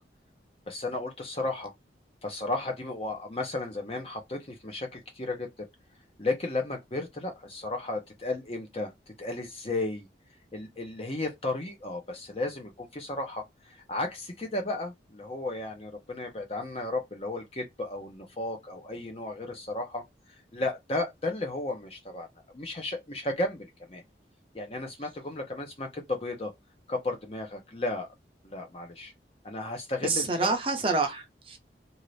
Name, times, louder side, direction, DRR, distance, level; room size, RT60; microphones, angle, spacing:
voice 1, 0.7-1.7 2.2-5.5 6.2-8.9 9.2-10.1 10.5-20.0 20.5-22.3 22.5-24.0 24.5-26.5 26.9-28.1 28.4-29.1 29.4-30.6, left 2 dB, 35° left, 0.8 m, -34 dB
voice 2, 30.0-31.6, right 3 dB, 30° right, 0.7 m, -27 dB
2.7 x 2.5 x 3.2 m
head